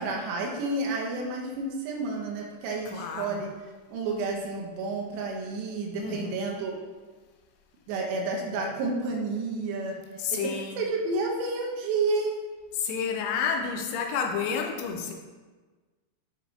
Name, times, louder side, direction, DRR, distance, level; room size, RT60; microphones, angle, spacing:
voice 1, 0.0-3.5 3.9-6.7 7.9-10.0 10.3-12.4, right 3 dB, 80° right, 0 dB, 3.1 m, -30 dB
voice 2, 2.9-3.4 5.9-6.7 10.2-10.8 12.7-15.1, left 6 dB, 80° left, 3 dB, 2.5 m, -30 dB
9.7 x 4.4 x 2.8 m, 1.3 s
omnidirectional pair, 5.0 m